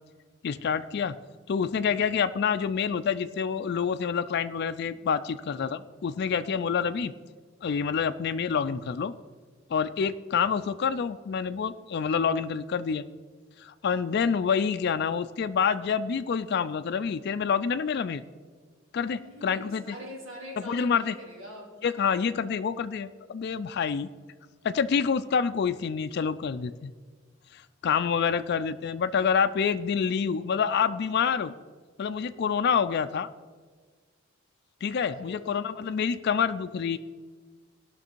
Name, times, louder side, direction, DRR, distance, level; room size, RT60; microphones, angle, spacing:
voice 1, 0.4-1.1 1.5-7.1 7.6-9.1 9.7-13.0 13.6-18.2 18.9-20.0 20.6-21.2 21.8-24.1 24.6-26.9 27.5-31.5 32.0-33.3 34.8-37.0, left 6 dB, 55° left, 10 dB, 0.4 m, -27 dB
voice 2, 19.2-21.8 35.1-35.6, equal, 85° right, -3 dB, 3.4 m, -43 dB
17.0 x 6.0 x 4.5 m, 1.5 s
head